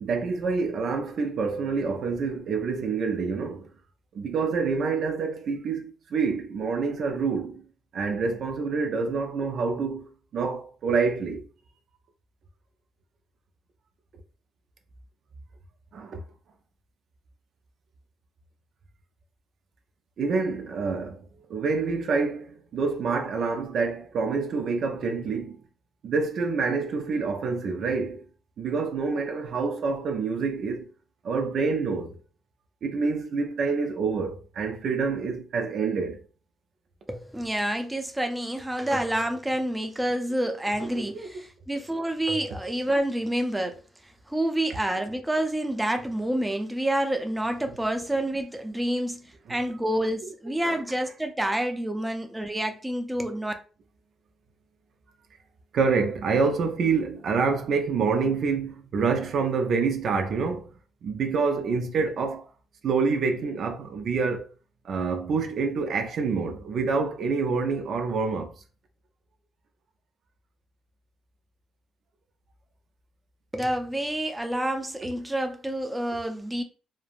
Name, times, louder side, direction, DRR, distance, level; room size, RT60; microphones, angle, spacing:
voice 1, 0.0-3.7 4.1-7.6 7.9-11.4 15.9-16.2 20.2-25.6 26.0-28.3 28.6-30.9 31.2-32.2 32.8-36.2 40.8-41.3 49.5-49.6 50.6-50.8 55.7-60.7 61.0-62.5 62.8-64.5 64.8-68.5, right 4 dB, 65° right, 0.4 m, -27 dB
voice 2, 37.1-43.8 44.3-49.2 49.5-53.5 73.5-76.6, right 1 dB, 10° right, 0.5 m, -28 dB
3.1 x 2.0 x 2.4 m
cardioid pair, 90°, 0 cm